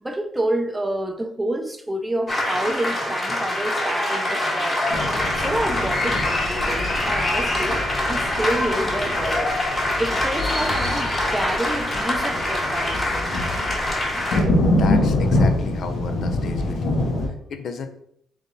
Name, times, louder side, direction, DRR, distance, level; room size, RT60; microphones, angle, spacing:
voice 1, 0.0-7.8 8.1-13.3, right 1 dB, 15° right, 0.6 m, -28 dB
sound 1, 2.3-14.4, left 1 dB, 30° left, 1.6 m, -24 dB
sound 2, 4.9-17.3, left 1 dB, 80° left, 1.3 m, -25 dB
voice 2, 14.8-17.9, left 5 dB, 60° left, 0.7 m, -34 dB
3.6 x 3.6 x 4.0 m
cardioid pair, 90°, 0 cm